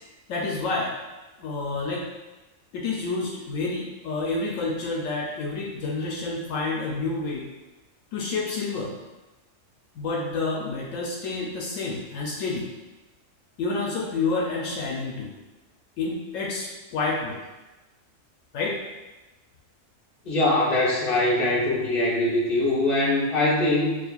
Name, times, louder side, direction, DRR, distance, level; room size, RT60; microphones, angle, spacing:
voice 1, 0.3-0.9 1.4-2.1 2.7-7.5 8.1-8.9 9.9-12.7 13.6-15.3 16.0-17.4 18.5-18.8, left 3 dB, 80° left, -2 dB, 1.0 m, -29 dB
voice 2, 20.2-24.0, left 2 dB, 45° left, -6 dB, 1.1 m, -22 dB
6.4 x 2.4 x 2.3 m, 1.1 s
omnidirectional pair, 1.4 m